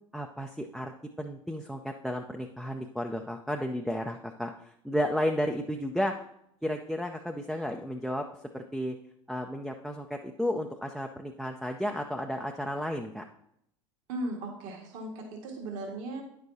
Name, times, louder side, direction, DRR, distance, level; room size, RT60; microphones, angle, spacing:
voice 1, 0.1-0.9 1.2-6.2 6.6-8.3 8.5-9.0 9.3-13.2, equal, ahead, 3 dB, 0.6 m, -33 dB
voice 2, 14.1-16.2, right 1 dB, 55° right, 1 dB, 1.7 m, -37 dB
9.6 x 6.6 x 2.7 m, 0.73 s
hypercardioid pair, 75°, 17 cm